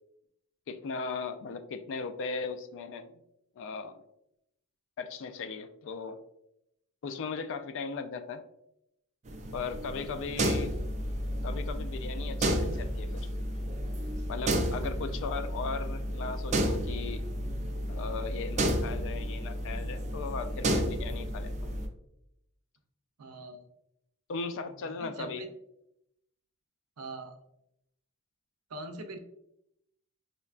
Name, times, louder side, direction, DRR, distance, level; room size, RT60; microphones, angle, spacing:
voice 1, 0.7-3.1 3.6-4.0 5.0-6.2 7.0-8.4 9.5-10.7 11.4-13.3 14.3-17.2 17.9-21.7 24.3-25.4, left 4 dB, 60° left, 10 dB, 0.3 m, -38 dB
sound 1, 9.3-21.9, equal, 30° right, 0.4 m, -32 dB
voice 2, 10.0-10.4 14.8-14.9 23.2-23.7 24.8-25.5 27.0-27.4 28.7-29.2, right 2 dB, 85° right, 6 dB, 0.5 m, -43 dB
5.1 x 2.2 x 2.3 m, 0.80 s
head